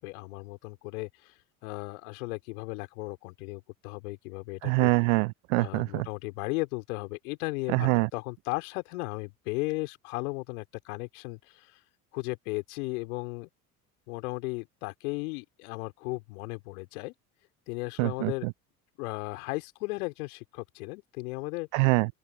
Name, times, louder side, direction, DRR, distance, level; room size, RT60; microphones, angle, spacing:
voice 1, 0.0-1.3 1.6-4.9 5.6-11.7 12.1-13.5 14.1-17.1 17.7-18.5 19.0-21.7, left 25 dB, 65° left, 3.9 m, -36 dB
voice 2, 4.6-6.1 7.7-8.1 18.0-18.5 21.7-22.1, right 29 dB, 60° right, 0.6 m, -25 dB
open air
figure-of-eight pair, 60°, 47 cm